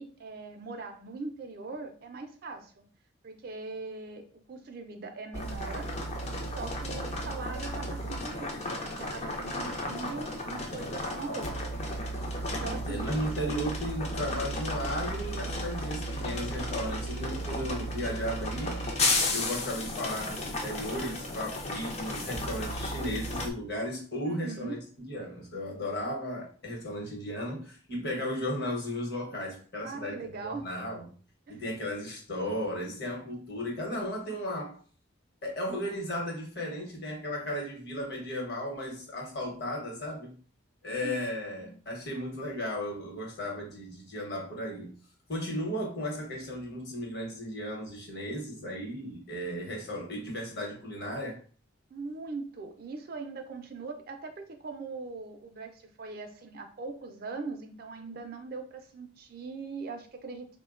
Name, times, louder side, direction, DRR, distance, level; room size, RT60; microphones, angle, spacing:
voice 1, 0.0-2.8 3.2-5.9 6.4-11.8 12.5-13.1 13.4-13.6 24.2-24.8 29.8-30.7 31.5-31.7 41.0-41.2 41.5-41.7 51.9-60.5, right 4 dB, 50° right, 0.4 m, -41 dB
sound 1, 5.3-23.5, left 1 dB, 35° left, 0.4 m, -34 dB
voice 2, 12.6-19.0 19.3-31.1 31.5-34.8 35.4-40.3 40.8-44.9 45.3-51.4, equal, 55° left, 0.9 m, -35 dB
3.3 x 2.1 x 2.4 m
head